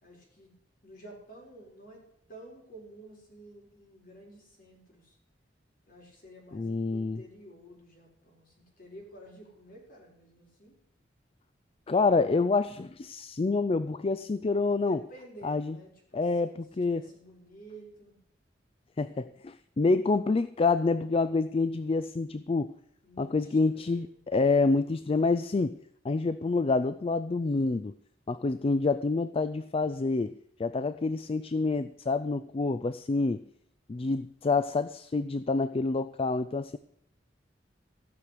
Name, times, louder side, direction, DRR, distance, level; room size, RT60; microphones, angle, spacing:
voice 1, 0.0-0.5 0.8-5.2 5.9-10.8 14.8-18.2 23.0-24.2, right 1 dB, 50° left, -1 dB, 4.8 m, -51 dB
voice 2, 6.5-7.2 11.9-15.0 15.4-15.8 16.1-17.0 19.0-22.7 23.2-25.8 26.0-27.9 28.3-33.4 33.9-36.8, left 3 dB, 30° left, 13 dB, 0.4 m, -27 dB
15.5 x 6.4 x 8.4 m, 0.71 s
head